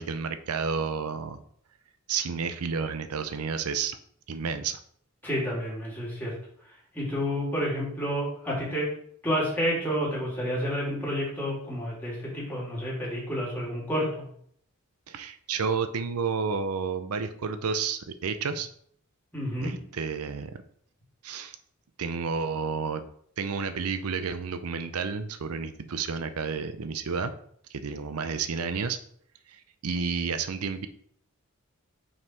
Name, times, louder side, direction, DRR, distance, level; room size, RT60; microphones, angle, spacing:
voice 1, 0.0-1.4 2.1-4.0 4.3-4.8 15.1-18.7 19.6-20.5 21.2-21.6 22.0-23.0 23.4-27.3 27.7-29.0 29.5-30.9, right 5 dB, 85° right, 10 dB, 0.6 m, -31 dB
voice 2, 5.2-6.3 6.9-8.9 9.2-14.3 19.3-19.7, equal, 10° left, -6 dB, 3.1 m, -30 dB
5.6 x 5.4 x 4.6 m, 0.64 s
head